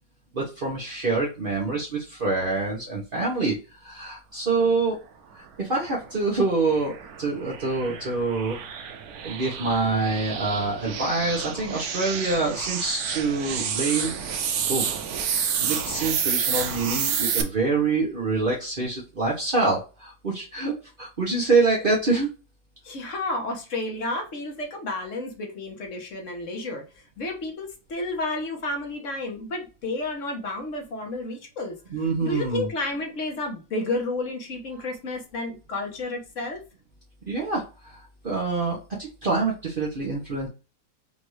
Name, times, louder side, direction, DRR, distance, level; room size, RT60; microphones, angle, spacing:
voice 1, 0.3-3.5 3.8-5.0 5.6-8.6 9.2-14.4 14.7-14.9 15.6-22.3 31.9-32.7 37.3-40.5, right 3 dB, 40° right, -4 dB, 1.0 m, -26 dB
sound 1, 5.9-17.4, right 7 dB, 85° right, 1.2 m, -30 dB
voice 2, 22.8-26.8 27.2-31.7 32.2-36.6, left 2 dB, 60° left, 2 dB, 1.4 m, -31 dB
5.4 x 2.5 x 3.1 m, 0.31 s
omnidirectional pair, 1.5 m